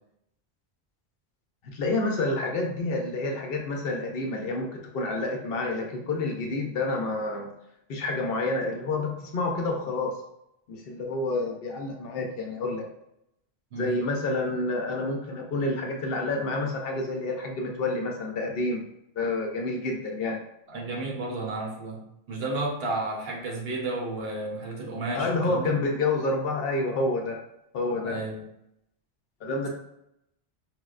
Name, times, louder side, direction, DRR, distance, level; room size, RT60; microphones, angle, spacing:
voice 1, 1.6-7.5 7.9-10.1 10.7-12.8 13.7-18.8 19.2-20.4 25.1-27.4 27.7-28.2 29.4-29.7, left 2 dB, 65° left, 1 dB, 0.8 m, -28 dB
voice 2, 20.7-25.7 28.0-28.4, right 2 dB, 70° right, -1 dB, 1.0 m, -32 dB
4.6 x 2.1 x 2.3 m, 0.80 s
omnidirectional pair, 1.1 m